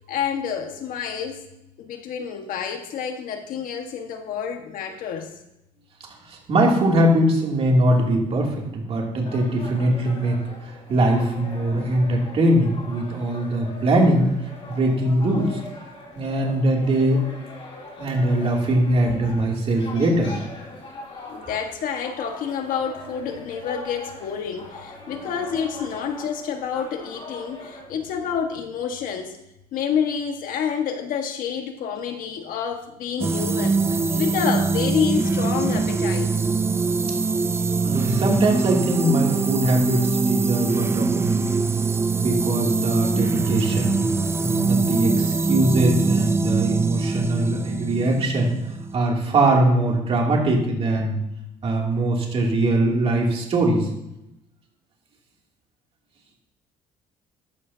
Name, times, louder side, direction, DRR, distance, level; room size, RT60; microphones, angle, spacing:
voice 1, 0.1-1.4 1.8-5.4 21.3-29.4 29.7-33.9 34.2-36.6, left 7 dB, 65° left, 1.5 m, -28 dB
voice 2, 6.3-10.4 10.6-14.3 14.7-15.6 16.1-17.2 18.0-20.3 25.1-25.3 37.8-41.5 42.2-44.0 44.4-48.6 48.9-51.2 51.6-53.9, right 1 dB, 40° right, 2.8 m, -21 dB
sound 1, 9.2-27.8, left 2 dB, 40° left, 3.5 m, -41 dB
sound 2, 33.2-48.9, right 4 dB, 15° right, 0.4 m, -23 dB
14.0 x 11.5 x 2.8 m
cardioid pair, 135°, 15 cm